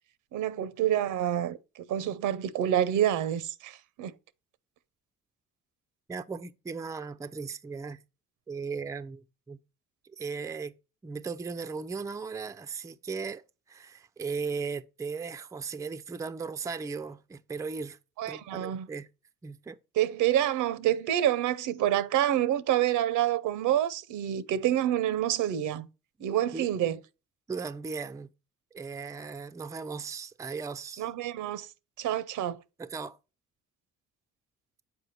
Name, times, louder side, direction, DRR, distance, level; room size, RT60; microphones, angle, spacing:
voice 1, 0.3-1.6 1.9-4.1 18.2-18.9 20.0-25.9 26.2-27.0 31.0-31.7 32.0-32.6, right 11 dB, 80° right, 0.6 m, -27 dB
voice 2, 6.1-8.0 8.5-9.6 10.2-10.7 11.0-18.0 18.3-19.1 19.4-19.8 26.5-26.7 27.5-28.3 28.7-31.1 32.8-33.2, right 5 dB, 10° right, 0.3 m, -37 dB
6.8 x 4.7 x 4.1 m
cardioid pair, 90°, 30 cm